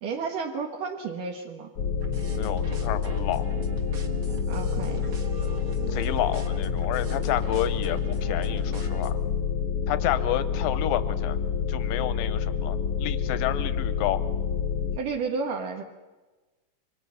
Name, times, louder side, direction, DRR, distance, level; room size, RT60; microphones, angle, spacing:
voice 1, 0.0-1.7 4.5-5.0 14.9-15.8, right 5 dB, 70° right, 2 dB, 3.1 m, -32 dB
sound 1, 1.8-15.0, left 7 dB, 65° left, 1.4 m, -28 dB
sound 2, 2.0-9.1, right 4 dB, 45° right, 1.6 m, -40 dB
voice 2, 2.4-3.5 5.9-9.2 9.9-11.4 11.7-14.2, left 13 dB, 85° left, 12 dB, 2.6 m, -30 dB
26.5 x 24.0 x 5.8 m, 1.2 s
omnidirectional pair, 4.0 m